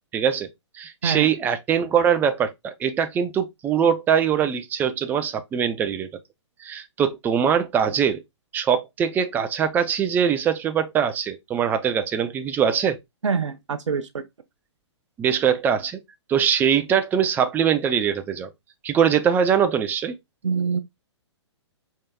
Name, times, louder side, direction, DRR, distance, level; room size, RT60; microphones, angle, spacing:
voice 1, 0.1-0.5 0.7-6.1 6.6-8.2 8.5-13.0 15.2-16.0 16.3-18.5 18.8-20.2, right 8 dB, 10° right, 0.4 m, -22 dB
voice 2, 13.2-14.2 20.4-20.8, right 5 dB, 80° right, 0.5 m, -25 dB
4.6 x 2.7 x 2.2 m
figure-of-eight pair, 120°, 15 cm